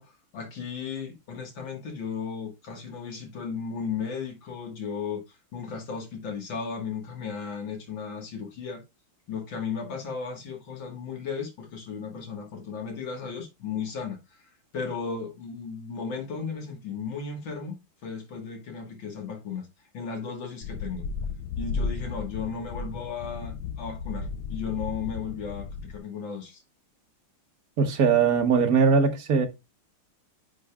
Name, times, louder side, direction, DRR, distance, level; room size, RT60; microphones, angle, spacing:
voice 1, 0.0-8.8 9.3-17.8 18.0-19.7 19.9-21.1 21.6-26.6, left 6 dB, 65° left, 2.2 m, -35 dB
sound 1, 20.6-26.0, left 4 dB, 85° left, 1.5 m, -34 dB
voice 2, 27.8-29.5, right 5 dB, 50° right, 1.3 m, -20 dB
9.9 x 5.2 x 2.3 m
omnidirectional pair, 2.3 m